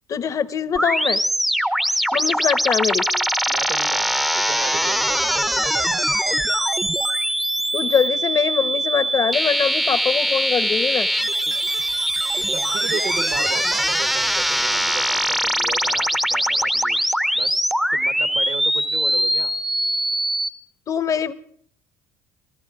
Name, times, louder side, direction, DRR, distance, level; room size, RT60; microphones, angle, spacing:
voice 1, 0.1-1.2 2.1-3.1 7.7-11.1 20.9-21.3, left 7 dB, 40° left, 14 dB, 0.9 m, -22 dB
sound 1, 0.8-20.5, equal, ahead, 0.7 m, -22 dB
voice 2, 3.5-6.4 12.5-17.0 17.3-17.7 17.9-19.5, right 8 dB, 60° right, 10 dB, 1.2 m, -35 dB
27.0 x 14.5 x 2.4 m, 0.62 s
hypercardioid pair, 60°, 8 cm